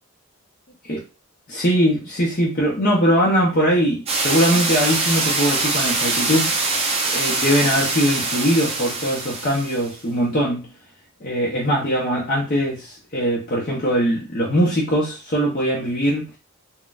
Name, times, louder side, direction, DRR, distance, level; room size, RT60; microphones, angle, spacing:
voice 1, 1.5-6.7 7.1-10.7 11.2-16.3, equal, 40° left, 0.7 m, -21 dB
sound 1, 4.1-9.9, right 3 dB, 30° right, 0.5 m, -23 dB
4.0 x 2.2 x 2.4 m
head